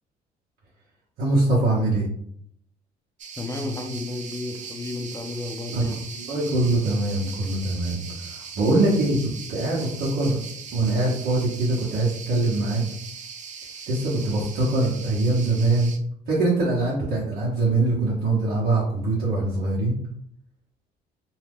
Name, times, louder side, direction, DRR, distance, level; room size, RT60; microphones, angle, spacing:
voice 1, 1.2-2.1 5.7-10.4 10.7-12.8 13.9-15.9 16.3-19.9, right 2 dB, 75° right, -7 dB, 1.0 m, -23 dB
sound 1, 3.2-16.0, right 6 dB, 45° right, 0.5 m, -39 dB
voice 2, 3.4-6.0, left 2 dB, 20° left, 4 dB, 0.5 m, -32 dB
2.7 x 2.3 x 3.4 m, 0.67 s
cardioid pair, 110°, 17 cm